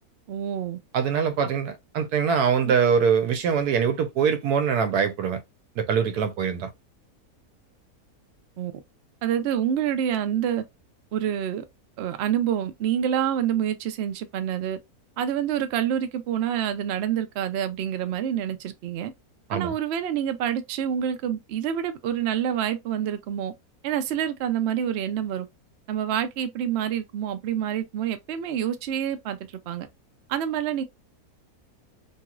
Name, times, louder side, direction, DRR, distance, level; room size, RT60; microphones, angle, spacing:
voice 1, 0.3-0.8 8.6-8.7 9.2-10.6 11.1-11.6 12.0-14.8 15.2-19.1 19.5-23.5 23.8-25.5 25.9-29.4 29.7-29.9 30.3-30.8, right 9 dB, 65° right, 0.7 m, -27 dB
voice 2, 0.9-5.4 5.8-6.7 19.5-19.7, right 7 dB, 90° right, 1.2 m, -23 dB
3.0 x 2.9 x 2.3 m
omnidirectional pair, 1.6 m